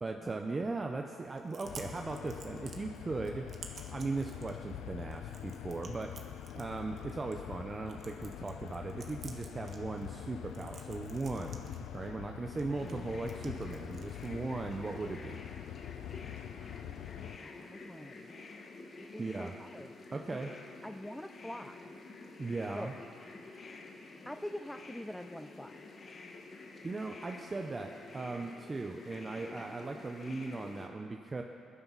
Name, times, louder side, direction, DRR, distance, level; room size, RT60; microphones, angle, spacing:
voice 1, 0.0-3.5 3.9-6.2 6.5-15.4 19.2-19.5 20.1-20.5 22.4-22.9 26.8-31.4, right 3 dB, 30° right, 3 dB, 0.7 m, -38 dB
Chewing mastication, 1.2-15.2, right 5 dB, 55° right, 1.5 m, -55 dB
sound 1, 1.6-17.4, left 11 dB, 85° left, 0.4 m, -45 dB
sound 2, 12.7-30.9, left 3 dB, 50° left, 1.6 m, -50 dB
voice 2, 12.7-13.2 16.6-18.4 19.0-20.0 20.3-20.6 20.8-22.0 22.7-22.9 24.3-25.8, equal, 5° left, 8 dB, 0.5 m, -45 dB
21.5 x 11.0 x 4.1 m, 2.5 s
cardioid pair, 90°, 0 cm